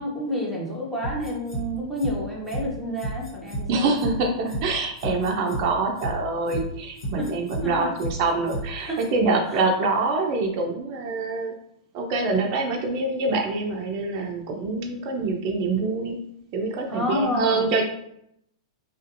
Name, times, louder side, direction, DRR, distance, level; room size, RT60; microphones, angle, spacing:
voice 1, 0.0-3.9 7.2-7.3 7.6-7.9 8.8-9.0 9.5-9.6 16.9-17.7, left 1 dB, ahead, -5 dB, 1.0 m, -29 dB
sound 1, 1.0-1.6 2.0-2.1 2.5-2.6 3.0-3.6 4.0-4.1 4.5-4.6 5.0-5.6 6.0-6.1 6.5-6.6 7.0-7.6 8.0-8.1 8.5-8.6 9.0-9.1, right 1 dB, 70° left, 1.0 m, -31 dB
voice 2, 3.7-11.5 11.9-16.2 16.5-17.8, right 3 dB, 45° right, 2 dB, 0.5 m, -25 dB
2.5 x 2.4 x 2.5 m, 0.74 s
hypercardioid pair, 110°, 3 cm